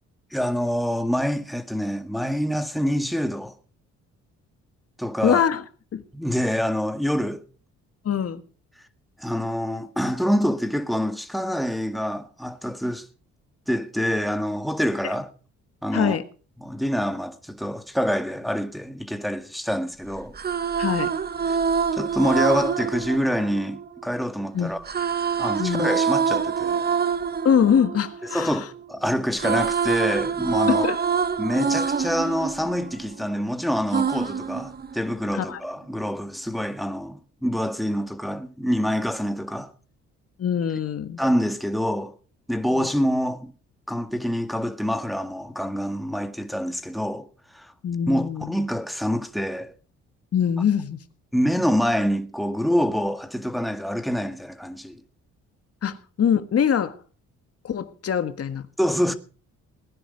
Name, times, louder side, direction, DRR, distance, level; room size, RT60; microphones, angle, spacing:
voice 1, 0.3-3.5 5.0-5.4 6.1-7.4 9.2-13.1 13.7-15.3 15.8-16.2 16.6-20.3 21.9-24.8 25.4-26.9 28.3-30.9 31.4-39.7 41.2-42.1 42.5-43.5 43.9-47.3 47.5-47.7 48.1-49.7 51.3-55.0 58.8-59.1, equal, ahead, 1.8 m, -26 dB
voice 2, 5.2-5.6 5.9-6.0 8.1-8.4 15.0-15.1 15.9-16.2 20.8-21.1 24.5-24.7 25.6-26.0 27.4-28.6 30.7-31.0 35.3-35.6 40.4-41.2 42.8-42.9 47.8-48.5 50.3-51.0 55.8-57.0 57.6-58.6, left 8 dB, 50° left, 1.7 m, -23 dB
sound 1, 20.2-24.3 24.8-28.9 29.2-33.4 33.9-35.4, right 6 dB, 30° right, 1.0 m, -26 dB
19.5 x 10.5 x 5.2 m
cardioid pair, 90°, 30 cm